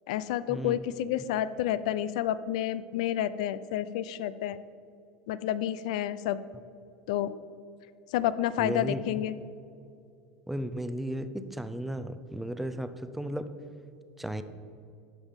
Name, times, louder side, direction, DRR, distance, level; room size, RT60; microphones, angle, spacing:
voice 1, 0.1-4.6 5.3-6.4 7.1-7.3 8.1-9.4, left 12 dB, 80° left, 15 dB, 0.4 m, -30 dB
voice 2, 8.6-9.0 10.5-13.5 14.2-14.4, right 1 dB, 5° right, 10 dB, 0.5 m, -34 dB
11.5 x 5.3 x 5.1 m, 2.5 s
supercardioid pair, 120°, 4 cm